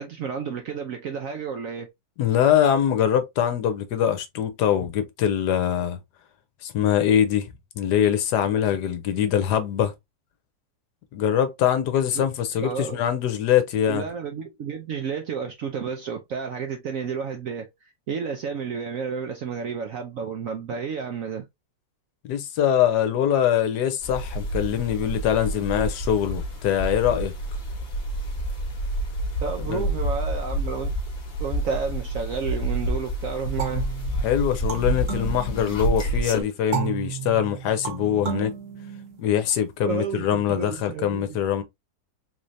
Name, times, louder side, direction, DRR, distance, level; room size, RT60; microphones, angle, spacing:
voice 1, 0.0-1.9 12.1-12.3 12.6-13.0 13.9-21.4 29.4-30.9 31.4-33.9 39.8-41.3, right 6 dB, 70° right, 0.8 m, -31 dB
voice 2, 2.2-6.0 6.6-7.5 7.8-9.9 11.1-14.0 22.2-27.3 29.7-29.8 34.2-38.5 39.2-41.6, left 10 dB, 70° left, 1.1 m, -23 dB
sound 1, 24.0-36.4, right 1 dB, 30° left, 1.1 m, -29 dB
sound 2, 33.6-36.1 36.7-39.5, right 8 dB, 50° right, 1.3 m, -33 dB
3.8 x 3.1 x 2.6 m
omnidirectional pair, 2.0 m